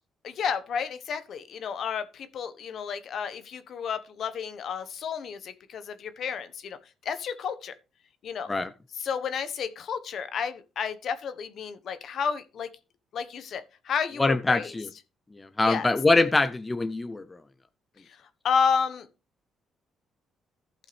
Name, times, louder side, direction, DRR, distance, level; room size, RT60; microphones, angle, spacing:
voice 1, 0.2-7.7 8.2-8.5 8.9-12.7 13.1-14.8 15.6-15.9 18.0-19.1, left 6 dB, 60° left, 1.2 m, -31 dB
voice 2, 14.2-14.9 15.3-17.2, left 2 dB, 20° left, 0.7 m, -23 dB
15.0 x 5.5 x 3.4 m
cardioid pair, 105°, 0 cm